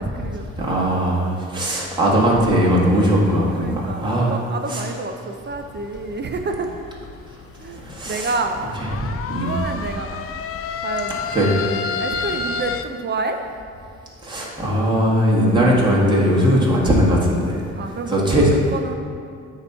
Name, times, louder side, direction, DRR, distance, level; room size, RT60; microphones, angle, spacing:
voice 1, 0.0-0.7 3.6-7.0 7.6-8.7 9.3-10.2 10.8-11.2 12.0-13.4 17.7-18.9, right 3 dB, 35° right, 5 dB, 0.5 m, -29 dB
voice 2, 0.6-4.4 4.7-4.8 7.8-8.3 9.0-9.1 9.3-9.5 11.3-11.5 14.2-17.6 18.1-18.5, equal, 15° right, -5 dB, 1.5 m, -19 dB
sound 1, 5.5-12.8, left 6 dB, 50° left, 0.4 m, -31 dB
8.6 x 2.9 x 5.5 m, 2.3 s
cardioid pair, 90°, 30 cm